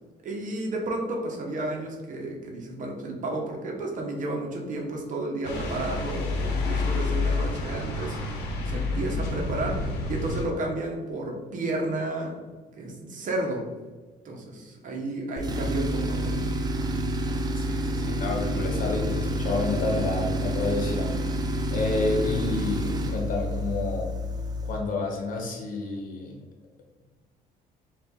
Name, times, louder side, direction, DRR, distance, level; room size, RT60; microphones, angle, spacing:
voice 1, 0.2-12.4 12.8-13.7 14.2-16.4, right 2 dB, 50° right, 0 dB, 0.9 m, -32 dB
sound 1, 5.4-10.4, left 3 dB, 85° left, 0.8 m, -29 dB
Tools, 15.4-24.8, equal, 25° right, 0.4 m, -28 dB
voice 2, 17.6-24.1 24.6-26.4, left 2 dB, 55° left, 0 dB, 1.0 m, -30 dB
4.0 x 2.5 x 3.6 m, 1.3 s
cardioid pair, 110°, 17 cm